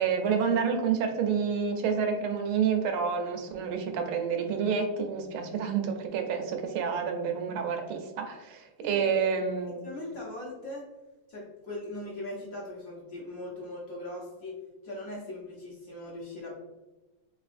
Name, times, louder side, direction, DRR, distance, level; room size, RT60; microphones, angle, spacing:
voice 1, 0.0-9.8, right 6 dB, 85° right, 4 dB, 1.5 m, -29 dB
voice 2, 8.9-9.3 9.8-10.9 11.3-14.5 14.8-16.6, left 1 dB, 55° left, -5 dB, 1.0 m, -40 dB
3.6 x 3.3 x 2.4 m, 1.1 s
omnidirectional pair, 2.3 m